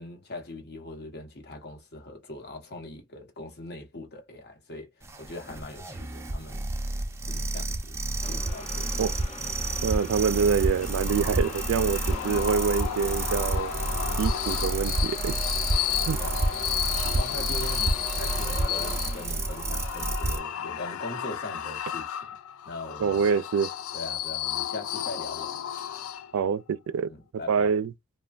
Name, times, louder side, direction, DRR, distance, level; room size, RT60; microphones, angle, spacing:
voice 1, 0.0-6.7 7.3-8.9 16.2-16.7 17.1-22.4 22.6-23.3 23.9-25.5 27.1-27.8, left 2 dB, 50° left, 1.0 m, -41 dB
sound 1, 5.0-20.4, right 2 dB, 15° right, 0.5 m, -30 dB
sound 2, 8.2-20.5, left 1 dB, 35° left, 0.6 m, -41 dB
voice 2, 9.8-13.7 14.2-15.4 16.1-16.2 23.0-23.7 26.3-27.1 27.5-27.9, right 6 dB, 75° right, 0.3 m, -26 dB
sound 3, 10.8-26.6, left 11 dB, 70° left, 0.3 m, -33 dB
3.2 x 2.2 x 2.4 m
head